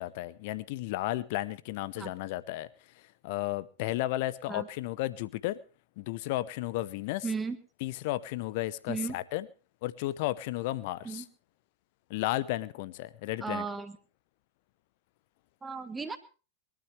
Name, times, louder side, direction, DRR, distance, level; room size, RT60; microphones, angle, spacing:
voice 1, 0.0-2.7 3.2-5.6 6.0-7.2 7.8-9.5 9.8-11.2 12.1-13.7, left 16 dB, 50° left, 0.8 m, -33 dB
voice 2, 7.2-7.6 8.9-9.2 11.0-11.2 13.4-14.0 15.6-16.2, right 4 dB, 15° right, 1.7 m, -35 dB
22.5 x 13.0 x 3.3 m
figure-of-eight pair, 90°, 0 cm